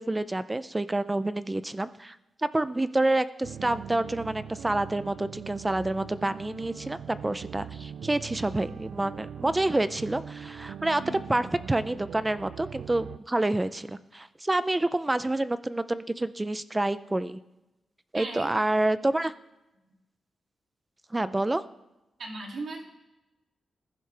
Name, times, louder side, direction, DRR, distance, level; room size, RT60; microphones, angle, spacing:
voice 1, 0.0-2.2 2.4-11.0 11.3-17.4 18.1-19.3 21.1-21.6, right 2 dB, 15° right, 14 dB, 0.4 m, -28 dB
sound 1, 3.4-13.2, right 8 dB, 85° right, 0.4 m, -41 dB
voice 2, 18.1-18.5 19.8-19.9 22.2-22.8, right 3 dB, 65° right, 0 dB, 2.6 m, -37 dB
20.5 x 11.0 x 3.4 m, 0.99 s
wide cardioid pair, 135°, 0 cm